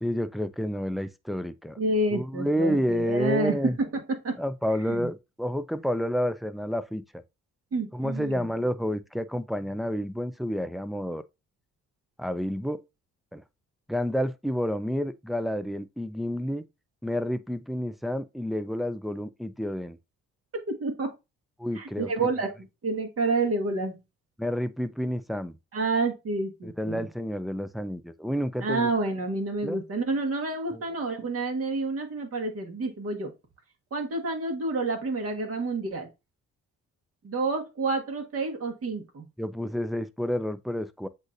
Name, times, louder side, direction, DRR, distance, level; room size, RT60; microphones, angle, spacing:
voice 1, 0.0-1.8 2.1-3.8 4.3-7.0 7.9-11.2 12.2-12.8 13.3-13.4 13.9-16.6 17.0-20.0 21.6-22.1 24.4-25.6 26.6-28.9 29.6-29.8 30.7-30.8 39.4-41.1, equal, ahead, 0.3 m, -29 dB
voice 2, 1.8-4.4 4.8-5.1 7.7-8.4 20.5-21.1 21.7-22.5 22.8-24.0 25.7-27.1 28.6-33.3 33.9-36.1 37.2-39.3, right 3 dB, 50° right, 1.4 m, -29 dB
7.9 x 2.7 x 2.5 m
cardioid pair, 90°, 30 cm